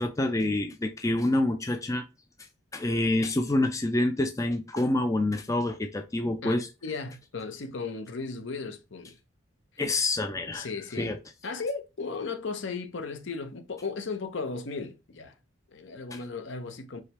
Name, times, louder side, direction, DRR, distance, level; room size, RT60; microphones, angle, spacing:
voice 1, 0.0-2.0 2.7-6.7 9.8-10.7 11.0-11.2 16.1-16.2, left 2 dB, 15° left, 0.4 m, -27 dB
voice 2, 6.8-9.2 10.5-11.2 11.4-15.4 15.7-17.0, left 4 dB, 65° left, 0.6 m, -35 dB
4.8 x 3.2 x 2.9 m
head